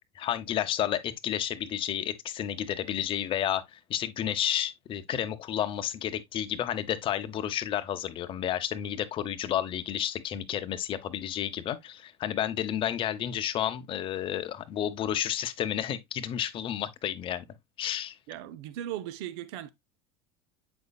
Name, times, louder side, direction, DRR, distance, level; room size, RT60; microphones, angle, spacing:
voice 1, 0.1-17.4 17.8-18.2, left 10 dB, 40° left, 0.8 m, -31 dB
voice 2, 18.3-19.7, right 12 dB, 70° right, 0.6 m, -37 dB
7.9 x 5.3 x 2.3 m
supercardioid pair, 120°, 14 cm